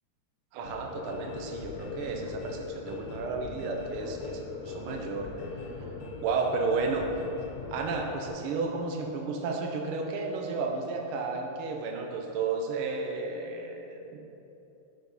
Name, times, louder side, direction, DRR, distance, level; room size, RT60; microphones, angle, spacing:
voice 1, 0.5-5.3 5.8-5.9 6.2-7.1 7.7-14.2, right 4 dB, 75° right, 1 dB, 1.7 m, -32 dB
sound 1, 0.6-8.3, left 4 dB, 80° left, 2.1 m, -40 dB
10.5 x 5.2 x 5.4 m, 2.9 s
omnidirectional pair, 2.4 m